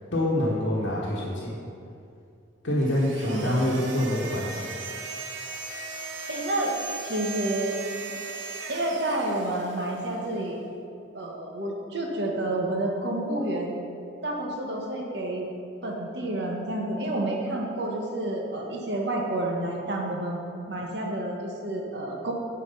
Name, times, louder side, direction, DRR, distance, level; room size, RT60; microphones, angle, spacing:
voice 1, 0.1-1.6 2.6-4.6, left 1 dB, 70° left, -6 dB, 1.1 m, -26 dB
sound 1, 2.8-10.2, right 4 dB, 80° right, 0.9 m, -38 dB
voice 2, 3.3-3.6 6.3-6.7 7.0-7.8 8.7-10.6 11.1-13.7 14.2-15.5 15.8-20.4 20.7-22.3, right 1 dB, 60° right, 0 dB, 1.2 m, -29 dB
9.6 x 4.5 x 5.4 m, 2.6 s
head